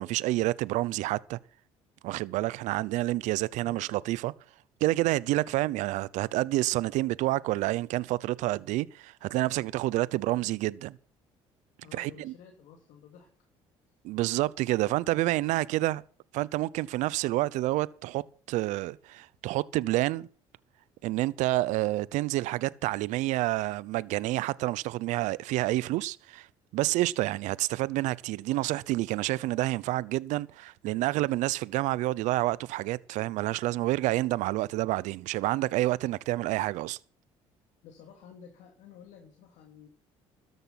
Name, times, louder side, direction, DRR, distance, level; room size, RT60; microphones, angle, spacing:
voice 1, 0.0-1.4 2.0-4.3 4.8-11.0 11.9-12.3 14.0-16.0 16.3-20.3 21.0-26.5 26.7-37.0, right 17 dB, 75° right, 0.8 m, -28 dB
voice 2, 3.6-4.0 5.3-5.5 11.8-13.3 37.8-39.9, left 7 dB, 75° left, 3.1 m, -52 dB
13.5 x 10.5 x 5.9 m
supercardioid pair, 75°, 13 cm